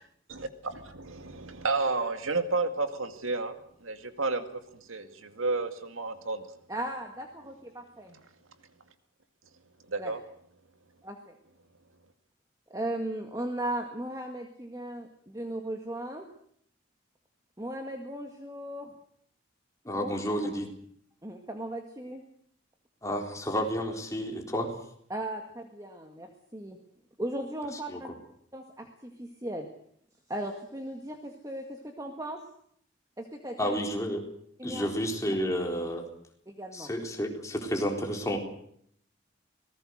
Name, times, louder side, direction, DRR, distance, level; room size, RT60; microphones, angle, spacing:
voice 1, 0.3-4.6 4.9-6.5 9.9-10.2, right 3 dB, 90° right, 8 dB, 2.1 m, -31 dB
voice 2, 6.7-8.2 10.0-10.1 11.0-11.3 12.7-16.3 17.6-18.9 20.0-20.1 21.2-22.2 25.1-26.8 27.2-28.1 28.5-29.7 30.3-32.4 33.2-33.8 34.6-34.9 36.5-36.9, right 1 dB, 15° right, 3 dB, 1.8 m, -37 dB
voice 3, 19.8-20.7 23.0-24.7 27.9-28.1 33.6-34.2 34.6-36.1 36.7-38.4, equal, 15° left, 2 dB, 4.0 m, -31 dB
25.0 x 19.5 x 6.5 m, 0.66 s
head